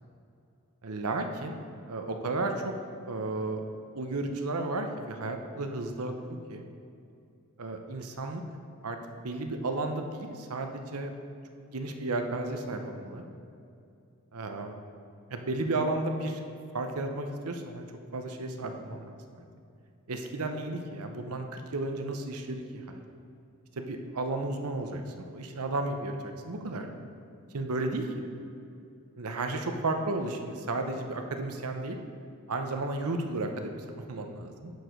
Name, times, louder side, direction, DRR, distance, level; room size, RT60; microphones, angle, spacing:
voice 1, 0.8-1.6 1.9-2.7 3.1-3.6 3.9-6.6 7.6-8.4 8.8-11.1 11.5-13.2 14.3-14.8 15.3-16.4 16.7-17.8 18.1-19.4 20.1-23.0 23.8-26.9 27.5-28.2 29.2-32.0 32.5-34.7, right 2 dB, 85° right, 5 dB, 0.8 m, -33 dB
10.5 x 4.8 x 5.2 m, 2.5 s
head